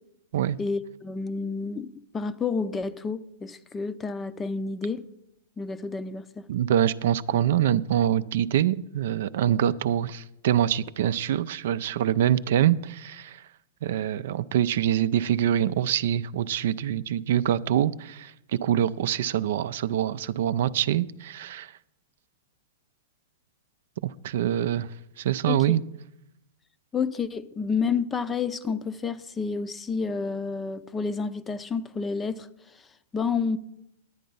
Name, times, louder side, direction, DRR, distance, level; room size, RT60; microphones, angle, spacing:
voice 1, 0.6-5.0 5.6-6.5 25.5-25.8 26.9-32.5 33.1-33.6, left 5 dB, 15° left, 0.5 m, -30 dB
voice 2, 6.5-13.5 13.8-21.8 24.0-25.8, right 11 dB, 65° right, 0.4 m, -25 dB
10.0 x 9.3 x 5.4 m
hypercardioid pair, 115°, 0 cm